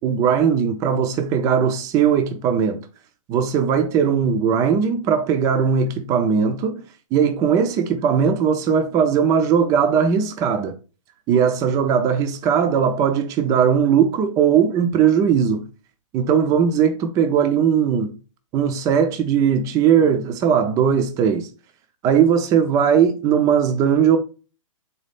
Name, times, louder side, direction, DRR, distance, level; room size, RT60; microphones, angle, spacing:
voice 1, 0.0-2.8 3.3-6.8 7.1-10.8 11.3-15.6 16.1-18.1 18.5-21.5 22.0-24.2, right 7 dB, 20° right, 0.4 m, -19 dB
4.0 x 2.4 x 3.3 m
hypercardioid pair, 135°, 17 cm